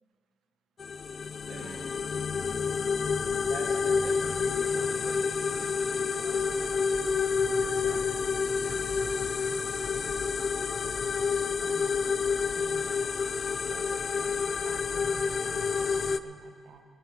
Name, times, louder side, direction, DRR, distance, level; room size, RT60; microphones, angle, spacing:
sound 1, 0.8-16.2, left 5 dB, 40° left, 0.4 m, -29 dB
voice 1, 3.3-5.2 5.4-6.7 7.6-9.2, right 2 dB, 40° right, -3 dB, 2.9 m, -46 dB
voice 2, 11.6-12.1 12.5-13.1 13.7-16.8, right 6 dB, 85° right, 6 dB, 1.1 m, -49 dB
18.0 x 10.5 x 4.7 m, 2.1 s
cardioid pair, 145°, 0 cm